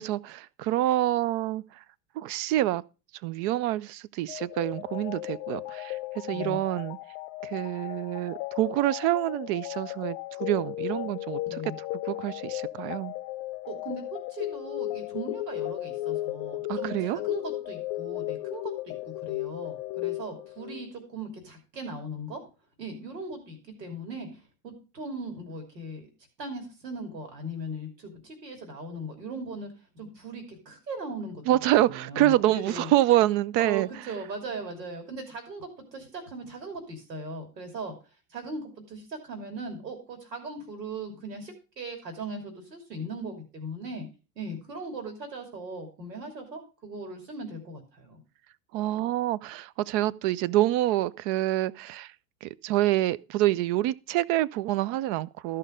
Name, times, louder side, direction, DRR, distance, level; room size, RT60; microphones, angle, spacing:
voice 1, 0.0-1.8 2.2-2.8 3.2-7.0 7.4-11.6 12.0-13.1 16.7-17.2 31.5-33.9 48.7-52.1 52.4-55.6, right 15 dB, 40° right, 0.5 m, -27 dB
sound 1, 4.3-20.9, left 17 dB, 45° left, 0.6 m, -35 dB
voice 2, 13.7-22.4 22.8-26.1 26.4-31.4 31.8-32.9 33.6-37.9 38.3-44.1 44.4-48.2, right 2 dB, 85° right, 2.9 m, -39 dB
13.5 x 5.6 x 5.0 m
hypercardioid pair, 90°, 48 cm